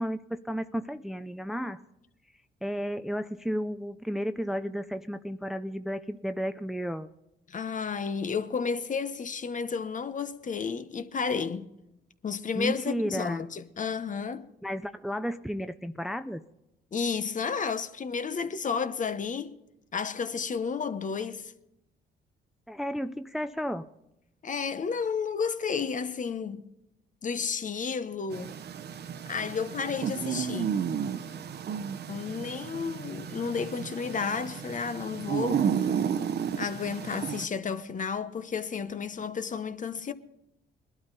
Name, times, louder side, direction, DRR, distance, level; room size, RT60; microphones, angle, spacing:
voice 1, 0.0-1.8 2.6-7.1 12.5-13.4 14.6-16.4 22.7-23.9, equal, ahead, 0.6 m, -33 dB
voice 2, 7.5-11.7 12.2-14.5 16.9-19.5 19.9-21.5 24.4-26.7 27.2-28.5 29.3-30.8 32.1-36.0 36.6-40.1, left 5 dB, 40° left, 1.0 m, -32 dB
sound 1, 28.3-37.5, right 8 dB, 55° right, 1.0 m, -32 dB
20.0 x 12.0 x 4.1 m
cardioid pair, 90°, 20 cm